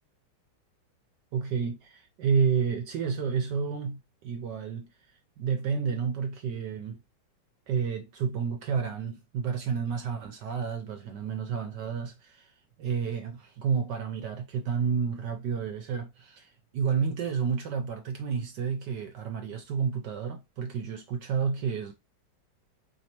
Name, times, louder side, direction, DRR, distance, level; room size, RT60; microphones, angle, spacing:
voice 1, 1.3-4.9 5.4-7.0 7.7-12.5 12.8-21.9, right 6 dB, 70° right, 1.1 m, -30 dB
4.0 x 3.5 x 2.9 m
omnidirectional pair, 2.2 m